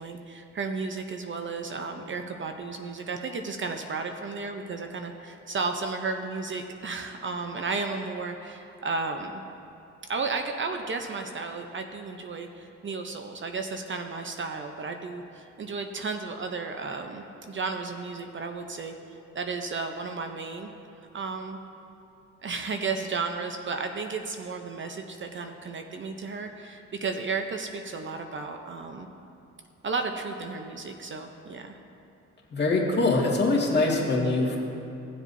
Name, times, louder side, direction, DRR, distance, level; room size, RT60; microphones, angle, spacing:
voice 1, 0.0-9.4 10.1-20.7 21.0-21.6 22.4-29.1 29.8-31.8, right 4 dB, 40° right, 5 dB, 0.7 m, -33 dB
voice 2, 32.5-34.6, left 2 dB, 35° left, -2 dB, 2.0 m, -23 dB
18.0 x 7.4 x 2.7 m, 2.8 s
cardioid pair, 90°, 30 cm